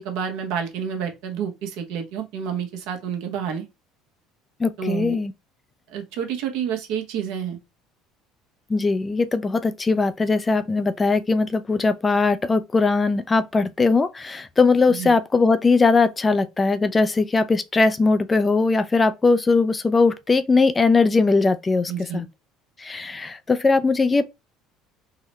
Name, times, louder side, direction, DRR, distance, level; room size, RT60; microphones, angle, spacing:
voice 1, 0.0-3.7 4.8-5.2 5.9-7.6 14.9-15.1 21.9-22.3, right 8 dB, 75° right, 0.9 m, -29 dB
voice 2, 4.6-5.3 8.7-22.3 22.8-24.2, left 3 dB, 20° left, 0.3 m, -20 dB
3.8 x 2.1 x 2.9 m
supercardioid pair, 100°, 0 cm